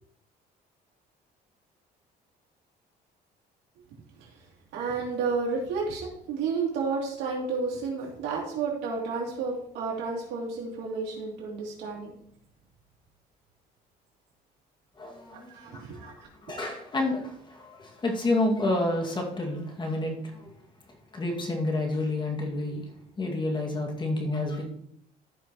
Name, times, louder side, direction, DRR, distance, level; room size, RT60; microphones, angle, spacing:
voice 1, 4.7-12.1 15.3-16.1, right 4 dB, 90° right, -2 dB, 2.9 m, -31 dB
voice 2, 15.0-16.1 16.4-20.5 21.1-22.8 23.2-24.7, left 2 dB, 25° left, 0 dB, 2.2 m, -29 dB
14.0 x 5.5 x 3.1 m, 0.66 s
cardioid pair, 110°, 17 cm